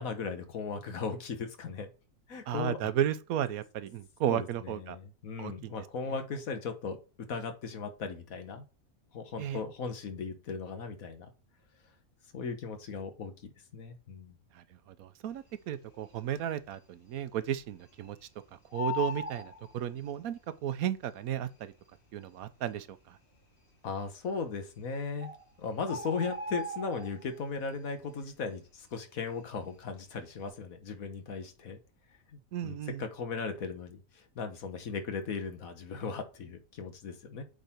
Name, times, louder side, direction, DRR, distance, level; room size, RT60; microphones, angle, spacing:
voice 1, 0.0-1.9 2.3-2.8 4.3-7.0 7.3-8.6 9.1-11.3 12.3-14.4 23.8-25.3 25.6-31.8 32.3-37.4, left 5 dB, 70° left, 1.6 m, -37 dB
voice 2, 2.5-5.0 5.4-5.7 6.1-6.3 9.4-9.6 14.5-18.2 18.7-21.7 22.1-23.2 32.5-33.0, right 10 dB, 75° right, 1.1 m, -34 dB
Bird, 15.8-16.4 16.7-16.8 17.1-18.3 18.5-20.4 21.2-21.3 21.9-22.0 22.2-22.4 23.0-23.5 24.4-24.5 24.9-25.0 25.2-27.5 27.8-28.1 28.5-29.8 30.2-30.4, left 3 dB, 35° left, 3.8 m, -39 dB
8.2 x 3.7 x 4.3 m
omnidirectional pair, 1.5 m